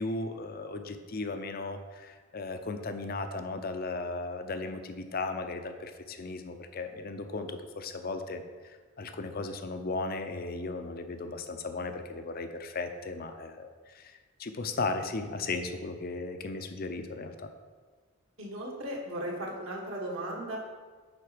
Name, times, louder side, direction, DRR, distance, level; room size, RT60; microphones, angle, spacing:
voice 1, 0.0-17.5, left 3 dB, 45° left, 7 dB, 0.6 m, -36 dB
voice 2, 18.4-20.6, right 1 dB, 65° right, -1 dB, 1.4 m, -36 dB
9.2 x 3.9 x 5.0 m, 1.5 s
head